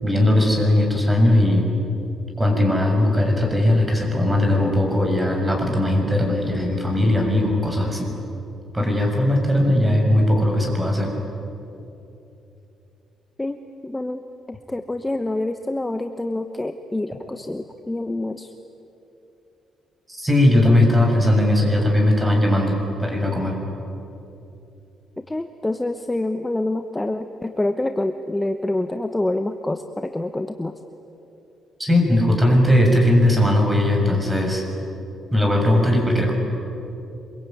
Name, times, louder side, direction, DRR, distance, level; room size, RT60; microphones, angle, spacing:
voice 1, 0.0-1.7 2.4-8.1 8.7-11.1 20.1-23.6 31.8-34.6 35.3-36.3, left 1 dB, 15° right, 2 dB, 6.9 m, -18 dB
voice 2, 13.8-14.2 14.5-18.5 25.2-30.7, left 2 dB, 15° left, 8 dB, 1.1 m, -26 dB
26.0 x 23.0 x 9.4 m, 2.9 s
cardioid pair, 90°, 0 cm